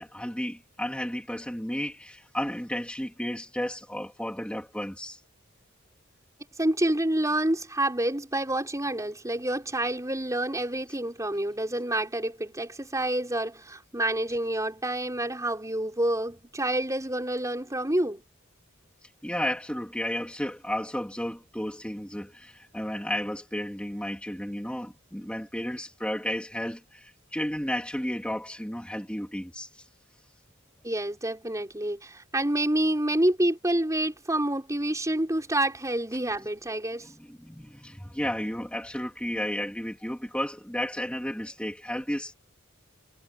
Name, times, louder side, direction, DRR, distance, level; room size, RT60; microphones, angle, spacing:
voice 1, 0.0-5.2 19.0-29.9 37.0-42.3, equal, 5° left, 3.0 m, -33 dB
voice 2, 6.6-18.2 30.8-37.1, right 1 dB, 15° right, 4.6 m, -28 dB
head